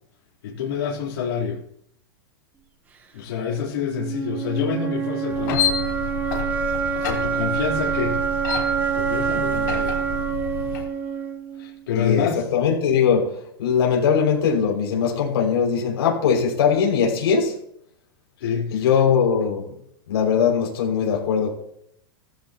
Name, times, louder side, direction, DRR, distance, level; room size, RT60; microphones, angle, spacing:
voice 1, 0.4-1.6 3.1-5.8 7.0-8.2 8.9-10.2 11.6-12.5 18.4-18.9, left 7 dB, 70° left, 3.8 m, -27 dB
sound 1, 3.8-11.8, right 7 dB, 15° right, 1.0 m, -26 dB
sound 2, 5.3-10.9, left 7 dB, 50° left, 3.5 m, -29 dB
voice 2, 12.0-17.6 18.7-19.6 20.1-21.5, left 6 dB, 85° left, 5.9 m, -20 dB
16.5 x 15.0 x 3.0 m
supercardioid pair, 180°, 13 cm